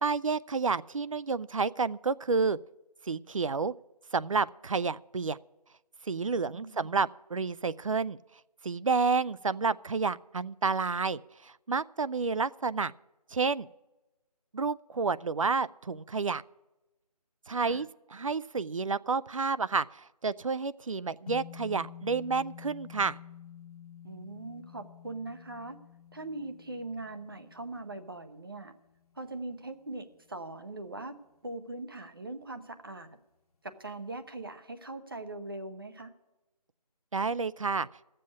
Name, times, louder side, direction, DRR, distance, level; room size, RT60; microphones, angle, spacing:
voice 1, 0.0-2.6 3.0-3.7 4.1-5.4 6.0-8.2 8.6-12.9 13.3-13.7 14.5-16.4 17.5-17.9 18.1-23.2 37.1-37.9, right 4 dB, 55° right, 17 dB, 0.4 m, -30 dB
voice 2, 6.3-6.9 17.6-17.8 24.0-25.8 26.1-28.7 29.2-31.2 31.4-33.2 33.6-36.1, right 2 dB, 35° right, 8 dB, 0.8 m, -41 dB
sound 1, 21.3-29.7, left 8 dB, 60° left, 1.5 m, -49 dB
12.0 x 7.6 x 8.5 m, 1.0 s
figure-of-eight pair, 180°, 20 cm